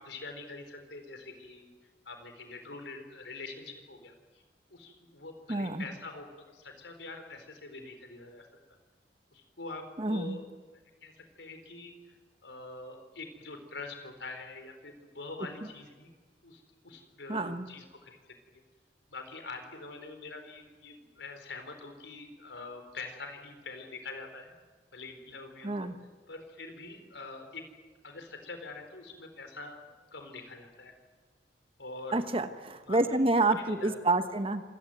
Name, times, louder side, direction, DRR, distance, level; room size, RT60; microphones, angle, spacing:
voice 1, 0.0-1.7 2.1-4.1 4.7-6.3 6.5-8.5 9.3-10.5 11.0-11.9 12.4-16.1 16.4-18.2 19.1-24.5 24.9-25.7 26.3-27.6 28.0-30.9 31.8-32.2 32.9-33.3 33.6-34.0, left 3 dB, 80° left, 6 dB, 4.4 m, -44 dB
voice 2, 5.5-5.9 10.0-10.4 17.3-17.7 25.6-26.0 32.1-34.6, right 2 dB, 30° right, 10 dB, 1.3 m, -28 dB
26.5 x 18.0 x 9.2 m, 1.3 s
head